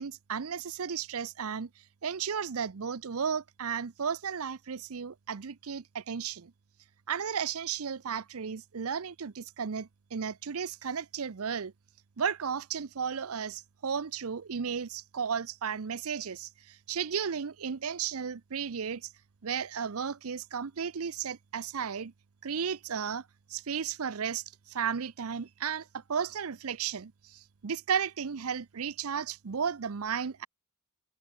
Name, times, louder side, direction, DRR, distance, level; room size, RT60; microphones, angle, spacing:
voice 1, 0.0-1.7 2.0-6.5 7.1-11.7 12.2-19.1 19.4-22.1 22.4-23.2 23.5-30.5, right 7 dB, 70° right, 0.6 m, -34 dB
head